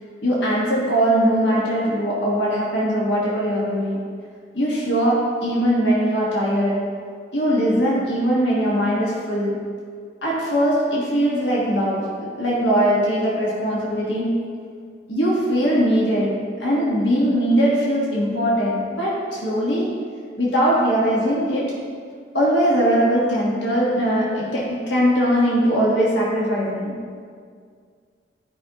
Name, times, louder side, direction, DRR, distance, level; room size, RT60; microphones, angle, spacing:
voice 1, 0.2-4.0 4.5-6.9 7.3-9.7 10.2-14.4 15.1-20.0 20.4-21.8 22.3-26.9, equal, 90° left, -5 dB, 1.4 m, -21 dB
12.0 x 5.2 x 2.9 m, 2.1 s
head